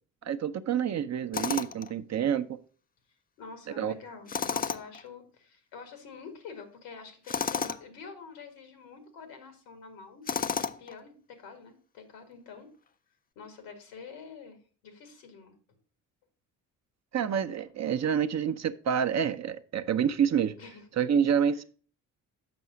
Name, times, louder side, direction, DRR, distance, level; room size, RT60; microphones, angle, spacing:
voice 1, 0.2-2.6 3.8-3.9 17.1-20.6 21.0-21.6, right 8 dB, 40° right, 0.6 m, -28 dB
Tools, 1.3-1.9 4.3-5.0 7.3-7.8 10.3-11.0, left 6 dB, 20° left, 0.4 m, -31 dB
voice 2, 3.4-10.4 10.8-12.7 13.4-15.6 20.6-21.1 21.5-21.6, left 5 dB, 85° left, 1.9 m, -47 dB
7.0 x 5.4 x 5.0 m
supercardioid pair, 65°, 43 cm